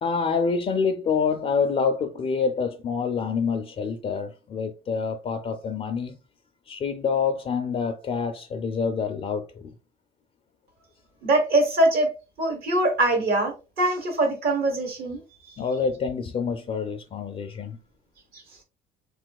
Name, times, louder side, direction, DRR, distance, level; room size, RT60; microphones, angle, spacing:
voice 1, 0.0-6.2 6.7-9.7 15.6-17.8, left 5 dB, 35° left, 0.3 m, -27 dB
voice 2, 11.2-12.1 12.4-15.2, right 2 dB, 70° right, 1.1 m, -22 dB
3.3 x 3.0 x 2.3 m
cardioid pair, 110°, 17 cm